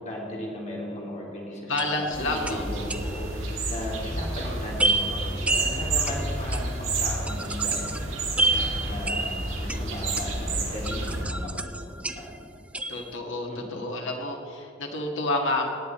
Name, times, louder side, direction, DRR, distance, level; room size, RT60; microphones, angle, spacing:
voice 1, 0.0-12.3 13.5-13.8, left 1 dB, 35° left, -3 dB, 2.6 m, -37 dB
voice 2, 1.7-2.7 5.4-6.3 12.9-15.7, left 2 dB, 65° left, 1 dB, 1.7 m, -30 dB
sound 1, 1.8-3.4 4.8-10.5 10.8-12.5 12.7-13.1, right 2 dB, 5° right, 0.4 m, -30 dB
sound 2, 2.1-11.2, right 2 dB, 65° right, 2.6 m, -30 dB
18.0 x 9.2 x 4.2 m, 2.4 s
head